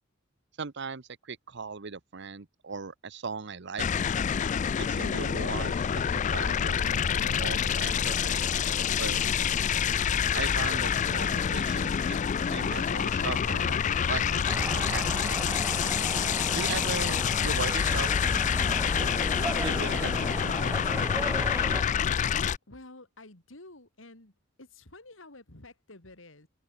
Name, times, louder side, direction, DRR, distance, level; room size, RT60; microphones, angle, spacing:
voice 1, 0.6-3.9 4.8-8.4 8.9-9.4 10.3-12.2 12.5-15.4 16.5-18.1 18.5-21.6, right 5 dB, 60° right, 1.0 m, -39 dB
sound 1, 3.8-22.6, left 7 dB, 40° left, 0.4 m, -27 dB
sound 2, 14.5-21.8, right 2 dB, 10° right, 0.8 m, -37 dB
voice 2, 22.7-26.5, left 2 dB, 70° left, 3.6 m, -50 dB
head